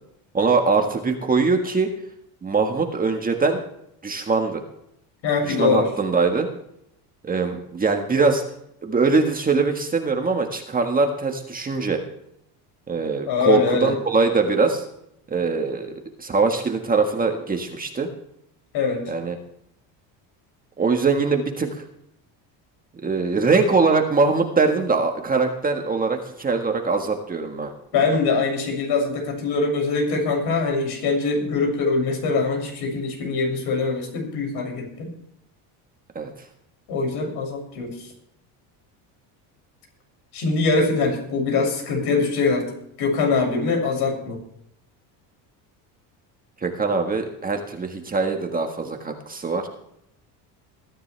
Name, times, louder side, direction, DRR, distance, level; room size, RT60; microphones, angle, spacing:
voice 1, 0.3-1.9 2.4-3.6 4.0-4.6 5.4-6.5 7.2-8.4 8.8-12.0 12.9-14.8 15.3-15.9 16.2-18.1 19.1-19.4 20.8-21.7 23.0-27.7 36.1-36.3 46.6-49.7, right 4 dB, 20° right, 4 dB, 1.6 m, -22 dB
voice 2, 5.2-5.9 13.2-13.9 18.7-19.0 27.9-35.1 36.9-37.9 40.3-42.7 43.0-44.4, left 4 dB, 60° left, 2 dB, 7.0 m, -23 dB
21.5 x 13.0 x 3.4 m, 0.75 s
cardioid pair, 140°, 44 cm